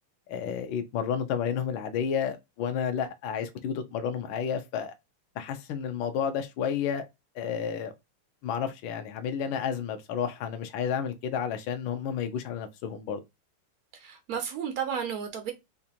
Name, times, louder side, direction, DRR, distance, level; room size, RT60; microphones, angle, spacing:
voice 1, 0.3-4.9 5.4-7.0 7.3-7.9 8.4-13.2, left 7 dB, 70° left, 1.4 m, -31 dB
voice 2, 13.9-15.5, right 7 dB, 80° right, 0.8 m, -33 dB
5.0 x 2.4 x 2.8 m
omnidirectional pair, 2.4 m